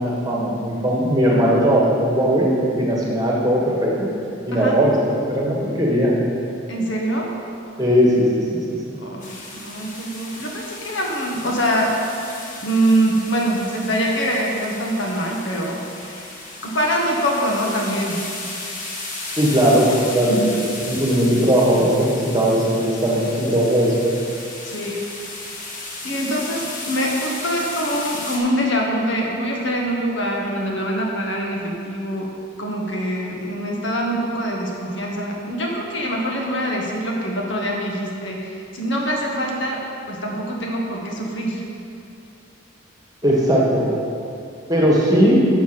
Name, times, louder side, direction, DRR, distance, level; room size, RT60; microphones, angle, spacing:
voice 1, 0.0-4.1 4.4-5.0 5.3-6.2 7.8-8.8 19.4-24.0 43.2-43.8 44.7-45.4, equal, 20° right, -4 dB, 1.5 m, -18 dB
voice 2, 6.7-7.3 9.0-11.9 12.6-16.3 16.6-18.2 20.3-20.6 24.6-25.0 25.3-25.7 26.0-32.3 32.6-39.8 40.1-41.6, equal, 60° left, -1 dB, 1.4 m, -24 dB
sound 1, 9.2-28.4, left 2 dB, 40° left, 1.3 m, -35 dB
7.1 x 7.1 x 6.0 m, 2.6 s
head